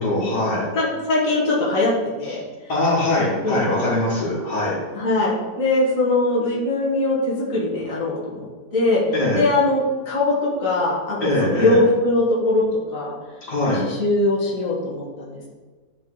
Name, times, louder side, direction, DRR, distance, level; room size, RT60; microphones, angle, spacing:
voice 1, 0.0-0.7 2.7-4.8 9.1-9.4 11.2-11.8 13.4-13.9, left 1 dB, 85° left, -4 dB, 2.7 m, -22 dB
voice 2, 0.7-1.9 2.2-2.4 3.4-3.6 4.9-8.5 8.7-9.0 9.3-12.6 12.9-13.1 13.8-15.5, left 2 dB, 55° left, -6 dB, 2.0 m, -21 dB
10.5 x 4.7 x 3.9 m, 1.4 s
omnidirectional pair, 1.7 m